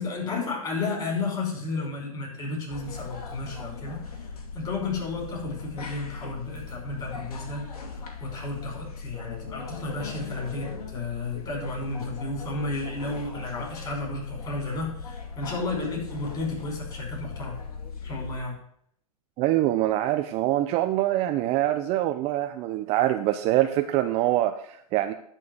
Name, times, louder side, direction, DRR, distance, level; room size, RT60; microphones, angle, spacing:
voice 1, 0.0-17.6 18.0-18.6, left 3 dB, 20° left, -2 dB, 5.3 m, -33 dB
sound 1, 2.7-18.4, left 4 dB, 70° left, 2.6 m, -39 dB
voice 2, 19.4-25.1, right 14 dB, 35° right, 8 dB, 0.6 m, -24 dB
11.0 x 4.6 x 7.8 m, 0.68 s
hypercardioid pair, 130°, 19 cm